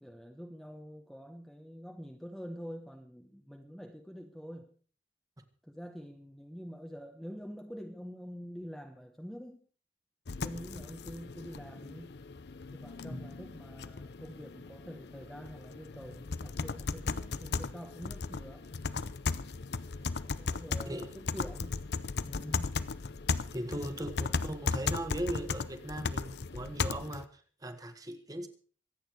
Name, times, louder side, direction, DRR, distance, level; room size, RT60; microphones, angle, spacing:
voice 1, 0.0-4.7 5.6-9.6 10.3-12.1 12.7-18.7 20.0-21.8 22.2-22.8 23.8-24.8, equal, ahead, 3 dB, 1.0 m, -46 dB
sound 1, 10.3-27.2, left 4 dB, 65° left, 0.7 m, -36 dB
voice 2, 23.5-28.5, right 1 dB, 20° right, 8 dB, 1.6 m, -38 dB
25.0 x 9.0 x 4.7 m, 0.41 s
head